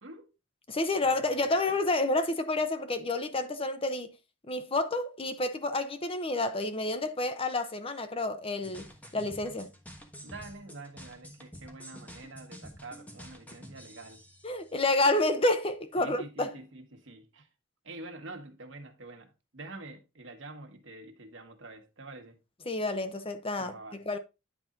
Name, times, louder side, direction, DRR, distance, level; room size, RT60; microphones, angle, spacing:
voice 1, 0.0-0.3 1.0-1.8 10.2-14.2 16.0-17.5 17.8-22.4 23.6-24.0, right 2 dB, 70° right, 1.5 m, -47 dB
voice 2, 0.7-4.1 4.5-9.7 14.4-16.5 22.7-24.2, left 2 dB, 30° left, 0.8 m, -29 dB
sound 1, 8.6-14.8, equal, 10° left, 1.3 m, -49 dB
10.0 x 4.2 x 3.7 m
head